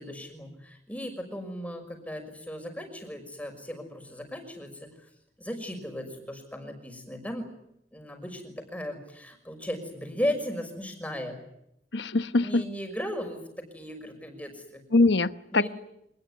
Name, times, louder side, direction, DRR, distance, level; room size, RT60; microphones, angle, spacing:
voice 1, 0.0-4.9 5.4-7.5 7.9-11.4 12.4-14.8 15.5-15.7, equal, 10° left, 5 dB, 6.0 m, -36 dB
voice 2, 11.9-12.6 14.9-15.7, left 2 dB, 90° left, 12 dB, 1.1 m, -23 dB
26.0 x 20.5 x 9.7 m, 0.79 s
head